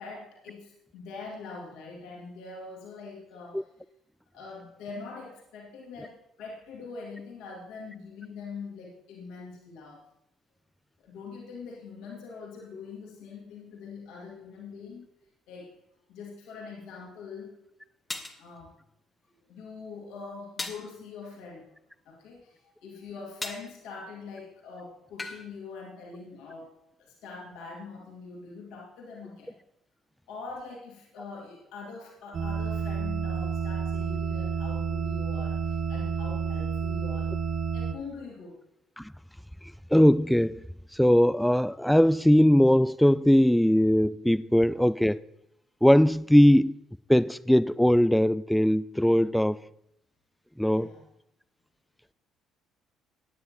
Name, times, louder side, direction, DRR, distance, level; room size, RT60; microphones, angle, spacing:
voice 1, 0.0-3.7 4.3-10.0 11.0-15.1 15.5-15.7 16.1-17.6 18.3-18.7 19.5-21.7 22.1-26.7 27.0-29.6 30.3-37.3 37.7-38.6 50.7-51.0, left 4 dB, 60° left, 2.3 m, -43 dB
sound 1, 17.0-17.1 18.1-18.4 20.6-20.9 23.4-23.7 25.2-25.4, left 2 dB, 20° left, 1.3 m, -36 dB
sound 2, 32.3-37.9, right 6 dB, 45° right, 0.8 m, -30 dB
voice 2, 39.9-40.6 40.9-45.2 45.8-46.8 47.1-49.6 50.6-50.9, equal, 5° left, 0.3 m, -20 dB
16.0 x 9.7 x 2.9 m
figure-of-eight pair, 50°, 0 cm